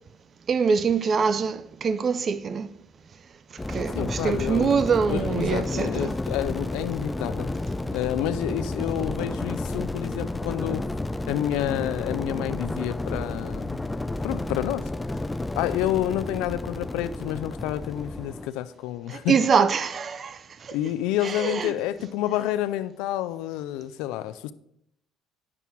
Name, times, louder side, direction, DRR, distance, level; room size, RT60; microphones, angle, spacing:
voice 1, 0.5-2.7 3.5-6.2 19.1-20.8 21.2-21.8, right 6 dB, 40° right, 0.6 m, -24 dB
sound 1, 3.6-18.5, left 2 dB, 15° left, 0.4 m, -31 dB
voice 2, 3.9-4.8 5.1-7.5 7.9-10.8 11.3-13.9 14.2-14.9 15.6-19.3 20.7-24.5, left 13 dB, 90° left, 0.4 m, -29 dB
9.8 x 7.0 x 4.5 m
cardioid pair, 100°, 0 cm